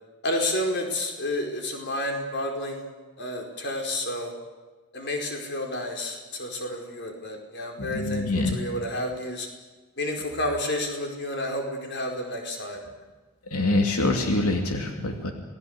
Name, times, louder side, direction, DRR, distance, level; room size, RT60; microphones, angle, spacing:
voice 1, 0.2-2.9 3.2-4.3 4.9-9.5 10.0-12.8, left 1 dB, 50° left, 2 dB, 4.7 m, -30 dB
voice 2, 7.8-8.6 13.5-15.3, left 2 dB, 85° left, 3 dB, 2.8 m, -25 dB
28.0 x 19.0 x 8.1 m, 1.3 s
head